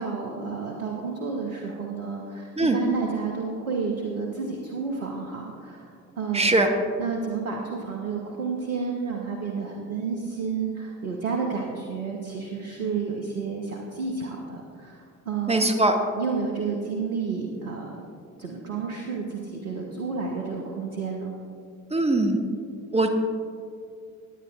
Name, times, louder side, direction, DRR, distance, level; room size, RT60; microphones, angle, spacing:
voice 1, 0.0-6.6 7.0-15.7 16.2-18.0 18.4-21.3, right 5 dB, 80° right, 0 dB, 1.0 m, -31 dB
voice 2, 6.3-6.7 15.5-15.9 21.9-22.4 22.9-23.1, right 2 dB, 15° right, 4 dB, 1.2 m, -21 dB
17.5 x 9.5 x 2.4 m, 2.3 s
figure-of-eight pair, 50°, 42 cm